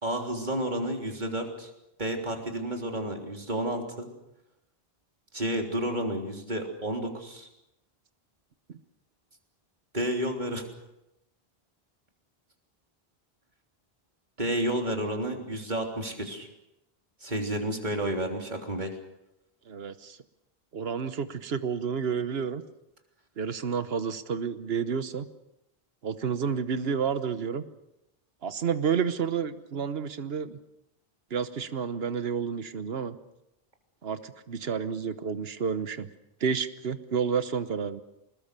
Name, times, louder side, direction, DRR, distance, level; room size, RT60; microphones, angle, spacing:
voice 1, 0.0-1.7 2.0-4.1 5.3-7.5 9.9-10.6 14.4-16.5 17.2-18.9, right 1 dB, 50° right, 2 dB, 3.7 m, -31 dB
voice 2, 19.7-20.2 20.7-22.6 23.4-25.3 26.0-27.6 28.4-30.6 31.3-33.2 34.0-36.1 36.4-38.0, right 6 dB, 75° right, 11 dB, 1.3 m, -30 dB
25.5 x 21.0 x 6.8 m, 0.88 s
omnidirectional pair, 1.0 m